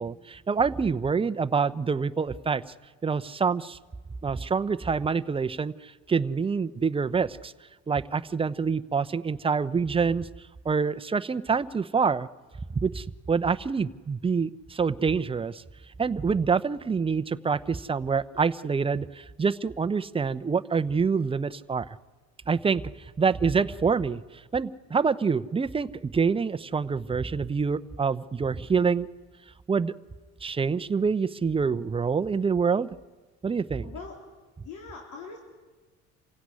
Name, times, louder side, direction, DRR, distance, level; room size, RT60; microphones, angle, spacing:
voice 1, 0.0-2.6 3.0-3.8 4.2-7.5 7.9-10.3 10.6-12.3 12.8-15.6 16.0-21.9 22.5-22.8 23.2-24.2 24.5-29.1 29.7-29.9 30.4-32.9 33.4-33.9, right 5 dB, 20° right, 11 dB, 0.7 m, -26 dB
voice 2, 33.8-34.2 34.6-35.4, left 5 dB, 75° left, 0 dB, 3.8 m, -41 dB
27.0 x 16.5 x 9.8 m, 1.3 s
cardioid pair, 115°, 30 cm